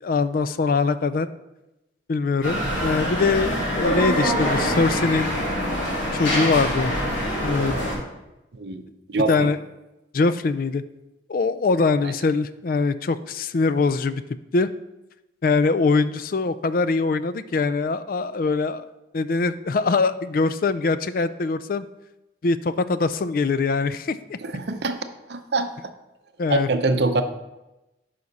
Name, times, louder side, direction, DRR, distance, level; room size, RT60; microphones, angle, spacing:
voice 1, 0.0-1.3 2.1-5.3 6.1-6.9 7.4-7.7 9.3-9.6 10.1-10.8 11.3-14.2 14.5-14.7 15.4-18.9 19.1-21.8 22.4-24.4 26.4-26.7, left 4 dB, 50° left, 14 dB, 0.4 m, -22 dB
sound 1, 2.4-7.9, equal, 85° left, 2.9 m, -24 dB
voice 2, 9.1-9.5 12.0-12.1 24.4-25.0 25.3-25.7 26.5-27.2, right 3 dB, 60° right, 8 dB, 0.7 m, -24 dB
9.7 x 5.8 x 4.1 m, 0.97 s
head